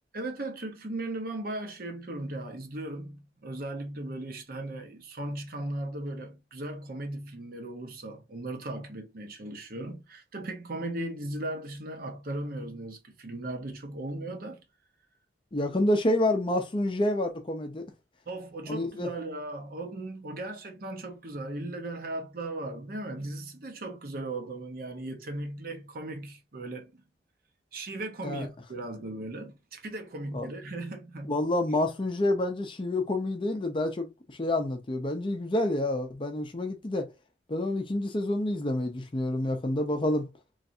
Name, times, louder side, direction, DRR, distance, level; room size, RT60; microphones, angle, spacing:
voice 1, 0.1-14.6 18.3-27.0 27.7-31.5, right 2 dB, 50° right, 0.7 m, -37 dB
voice 2, 15.5-17.9 18.7-19.1 28.2-28.5 30.3-30.5 31.3-37.1 37.5-40.3, left 1 dB, 25° left, 0.5 m, -28 dB
3.2 x 2.6 x 2.6 m
head